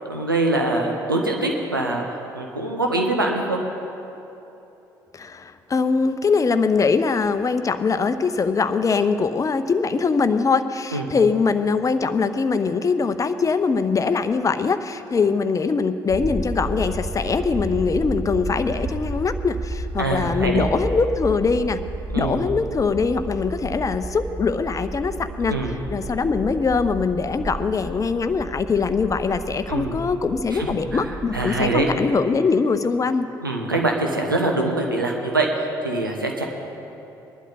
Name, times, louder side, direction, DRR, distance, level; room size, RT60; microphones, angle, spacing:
voice 1, 0.1-2.0 2.3-3.6 10.9-11.1 20.0-20.7 22.1-22.4 25.5-25.8 29.7-30.0 30.5-31.9 33.4-36.4, right 2 dB, 90° right, 1 dB, 1.1 m, -24 dB
voice 2, 5.1-21.8 22.2-25.5 25.9-33.3, left 4 dB, 30° left, 11 dB, 0.7 m, -22 dB
sound 1, 16.1-31.9, right 1 dB, 10° right, 1.0 m, -32 dB
20.5 x 11.5 x 4.0 m, 3.0 s
figure-of-eight pair, 50°, 11 cm